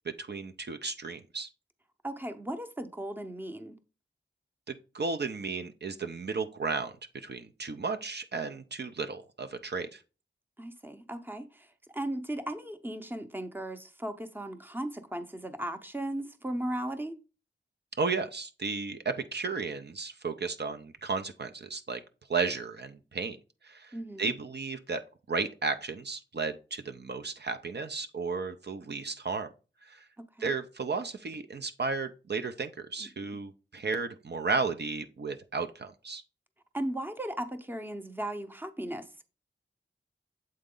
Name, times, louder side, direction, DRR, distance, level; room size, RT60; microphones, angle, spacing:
voice 1, 0.1-1.5 4.7-10.0 18.0-22.0 22.3-23.4 23.6-25.0 25.3-29.5 29.8-30.0 30.4-36.2, right 4 dB, 60° right, 0.6 m, -34 dB
voice 2, 2.0-3.8 10.6-17.1 23.9-24.3 30.2-30.5 33.0-33.4 36.7-39.2, right 1 dB, 10° right, 0.7 m, -37 dB
7.7 x 4.0 x 3.7 m
wide cardioid pair, 75°, 20 cm